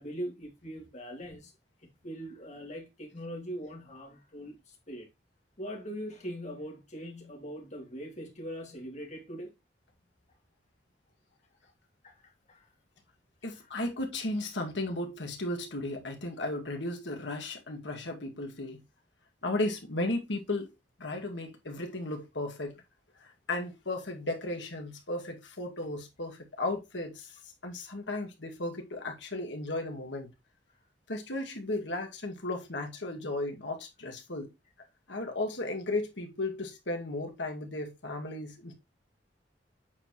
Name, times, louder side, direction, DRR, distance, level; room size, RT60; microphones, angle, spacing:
voice 1, 0.0-1.5 1.8-5.1 5.6-9.5 12.0-12.7 13.5-13.7, equal, 40° left, 2.8 m, -41 dB
voice 2, 13.4-18.8 19.4-20.7 21.0-22.8 23.2-27.4 27.6-30.3 31.1-34.5 35.1-38.7, left 2 dB, 80° left, 2.1 m, -35 dB
8.4 x 4.8 x 3.1 m
head